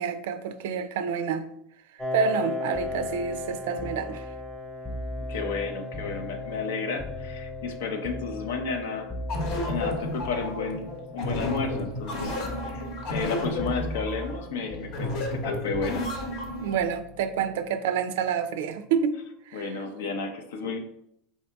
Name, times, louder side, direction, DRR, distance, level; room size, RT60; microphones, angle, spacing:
voice 1, 0.0-1.5 2.1-4.2 16.6-19.2 19.5-19.7, right 7 dB, 80° right, 11 dB, 0.3 m, -28 dB
Piano, 2.0-17.3, left 3 dB, 20° left, 0.9 m, -39 dB
sound 1, 2.7-6.7 7.0-11.0 11.3-12.2 12.4-13.3 13.6-17.6 18.8-19.0, equal, 5° left, 0.6 m, -40 dB
voice 2, 5.3-9.1 9.6-16.1 19.5-20.8, left 4 dB, 85° left, 5 dB, 0.5 m, -32 dB
sound 2, 9.3-16.8, left 1 dB, 60° left, 0.9 m, -32 dB
4.6 x 2.7 x 3.3 m, 0.74 s
supercardioid pair, 135°, 0 cm